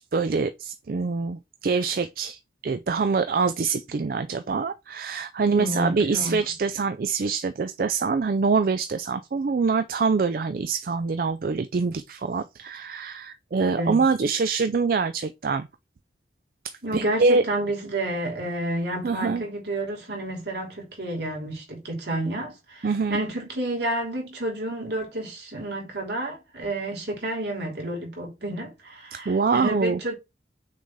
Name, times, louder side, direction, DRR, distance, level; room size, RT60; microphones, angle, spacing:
voice 1, 0.0-15.7 16.6-17.4 19.0-19.4 22.8-23.2 29.3-30.0, right 4 dB, 50° right, 0.4 m, -25 dB
voice 2, 5.5-6.4 13.6-14.0 16.8-30.1, right 1 dB, 70° right, 3.1 m, -30 dB
6.2 x 4.1 x 3.6 m
head